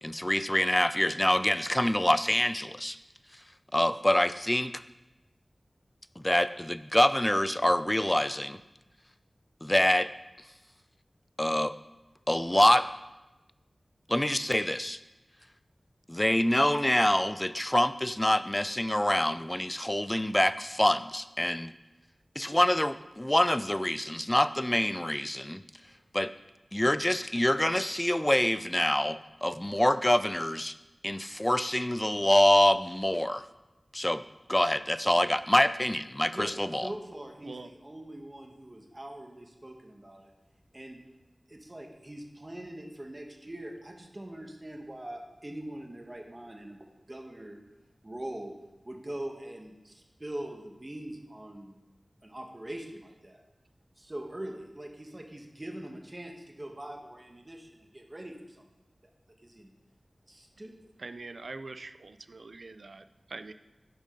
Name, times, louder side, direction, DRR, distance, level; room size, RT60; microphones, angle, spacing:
voice 1, 0.0-3.0 3.7-4.7 6.2-8.6 9.6-10.1 11.4-11.7 12.3-12.9 14.1-15.0 16.1-21.7 22.4-25.6 26.1-26.3 26.7-30.7 31.0-33.4 33.9-34.2 34.5-36.8, left 1 dB, 15° left, 14 dB, 0.3 m, -26 dB
voice 2, 36.3-40.3 40.7-41.0 41.5-47.6 48.0-48.5 48.8-51.7 52.2-53.4 54.0-58.7 59.4-59.7 60.3-60.9, right 1 dB, 30° right, 3 dB, 1.3 m, -42 dB
voice 3, 61.0-63.5, right 3 dB, 75° right, 10 dB, 0.4 m, -43 dB
10.5 x 5.1 x 3.8 m, 1.0 s
cardioid pair, 40°, 0 cm